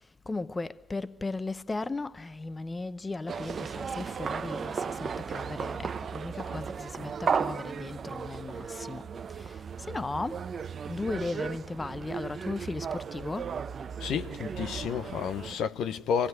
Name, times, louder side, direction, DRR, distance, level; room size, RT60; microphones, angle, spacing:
voice 1, 0.3-9.1 9.3-9.6 9.9-10.5 10.9-13.5, left 3 dB, 25° left, 0.9 m, -36 dB
sound 1, 3.3-15.6, right 6 dB, 50° right, 0.9 m, -35 dB
voice 2, 14.0-16.3, left 7 dB, 65° left, 1.1 m, -31 dB
26.5 x 19.0 x 9.6 m
hypercardioid pair, 55°, 0 cm